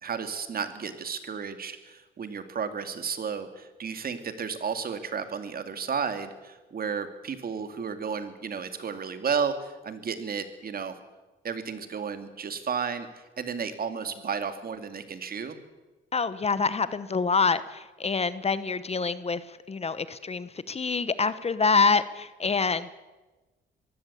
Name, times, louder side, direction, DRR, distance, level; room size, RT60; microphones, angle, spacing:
voice 1, 0.0-11.0 11.4-15.6, right 6 dB, 50° right, 9 dB, 2.5 m, -33 dB
voice 2, 16.1-22.9, left 4 dB, 30° left, 15 dB, 1.0 m, -26 dB
22.5 x 16.0 x 8.4 m, 1.2 s
cardioid pair, 90°, 20 cm